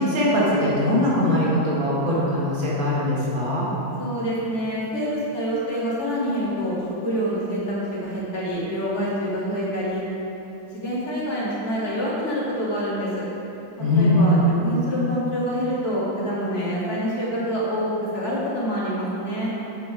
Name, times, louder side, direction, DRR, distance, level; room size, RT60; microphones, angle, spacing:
voice 1, 0.0-3.7 13.8-14.5, left 1 dB, 85° right, -7 dB, 2.8 m, -21 dB
voice 2, 4.0-10.0 10.7-13.1 13.9-17.9 18.1-19.5, equal, 50° left, -8 dB, 2.7 m, -26 dB
8.7 x 7.6 x 4.9 m, 3.0 s
omnidirectional pair, 2.1 m